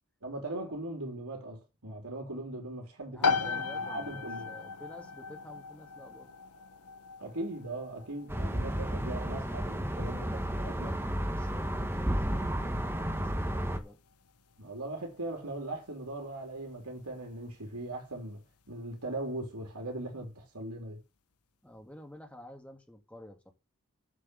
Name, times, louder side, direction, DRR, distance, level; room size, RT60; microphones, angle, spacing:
voice 1, 0.2-4.5 7.2-10.2 10.6-10.9 14.6-18.4 18.7-21.0, right 2 dB, 90° right, 3.2 m, -39 dB
voice 2, 3.1-6.3 9.7-14.0 21.6-23.5, left 1 dB, 5° left, 1.8 m, -50 dB
sound 1, 3.2-17.7, left 5 dB, 90° left, 1.0 m, -38 dB
sound 2, 8.3-13.8, equal, 10° right, 1.0 m, -32 dB
7.7 x 6.3 x 7.5 m
head